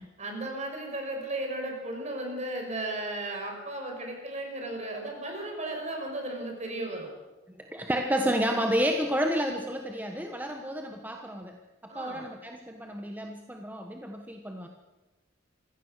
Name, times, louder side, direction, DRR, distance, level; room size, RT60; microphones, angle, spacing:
voice 1, 0.0-7.1 11.9-12.3, right 1 dB, 35° right, 2 dB, 5.8 m, -35 dB
voice 2, 7.5-14.7, equal, 10° right, 4 dB, 1.3 m, -31 dB
26.5 x 16.5 x 6.6 m, 1.1 s
head